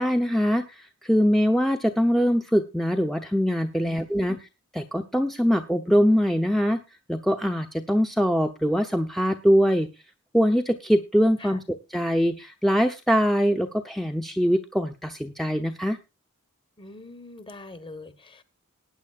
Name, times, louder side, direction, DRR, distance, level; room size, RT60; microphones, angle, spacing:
voice 1, 0.0-4.4 4.7-6.8 7.1-9.9 10.3-16.0, equal, ahead, 0.8 m, -23 dB
voice 2, 3.8-4.4 11.4-11.6 16.8-18.4, left 2 dB, 25° left, 1.4 m, -43 dB
18.5 x 9.5 x 2.4 m
head